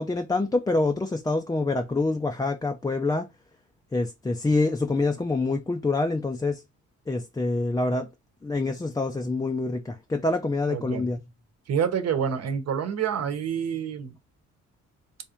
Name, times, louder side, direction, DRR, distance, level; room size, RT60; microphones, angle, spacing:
voice 1, 0.0-3.3 3.9-6.6 7.1-8.1 8.4-11.2, left 3 dB, 15° left, 0.4 m, -26 dB
voice 2, 10.7-11.1 11.7-14.2, right 7 dB, 55° right, 1.0 m, -27 dB
3.5 x 2.6 x 4.3 m
cardioid pair, 90°, 30 cm